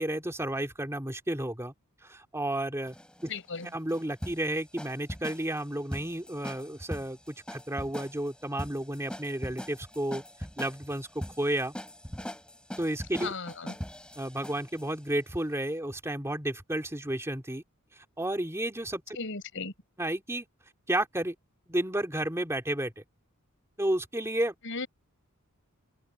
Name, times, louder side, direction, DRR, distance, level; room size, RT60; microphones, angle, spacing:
voice 1, 0.0-1.7 2.0-3.0 3.2-3.3 3.7-10.2 10.6-11.7 12.8-13.3 14.2-17.6 18.2-19.2 20.0-20.5 20.9-21.3 21.7-23.0 23.8-24.5, right 1 dB, 15° right, 2.9 m, -32 dB
sound 1, 2.9-14.9, equal, 5° left, 3.0 m, -41 dB
voice 2, 3.3-3.7 13.2-13.7 19.2-19.7 24.7-24.9, left 4 dB, 60° left, 6.9 m, -36 dB
head